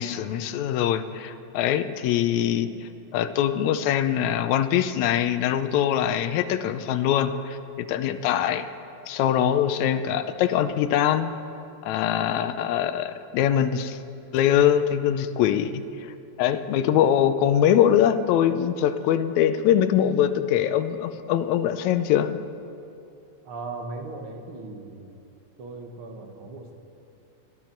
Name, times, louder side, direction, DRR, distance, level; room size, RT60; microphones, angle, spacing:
voice 1, 0.0-2.7 3.1-8.7 9.1-11.3 11.8-14.0 14.3-15.8 16.4-22.3, left 10 dB, 80° left, 10 dB, 2.0 m, -23 dB
voice 2, 23.5-25.2 25.6-26.7, right 3 dB, 50° right, 3 dB, 2.0 m, -38 dB
29.0 x 10.5 x 4.5 m, 2.7 s
omnidirectional pair, 3.3 m